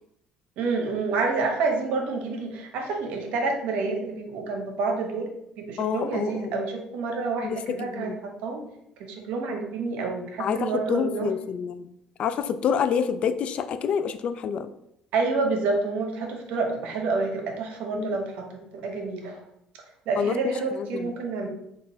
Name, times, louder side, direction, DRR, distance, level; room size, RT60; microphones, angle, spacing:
voice 1, 0.6-5.3 5.6-8.1 8.4-8.6 9.0-11.3 15.1-19.4 20.1-21.5, right 4 dB, 75° right, 2 dB, 0.9 m, -28 dB
voice 2, 5.8-6.6 7.4-8.2 10.4-11.8 12.2-14.7 17.9-18.2 20.2-21.1, left 7 dB, 55° left, 11 dB, 0.3 m, -28 dB
3.9 x 2.5 x 3.9 m, 0.79 s
cardioid pair, 100°, 2 cm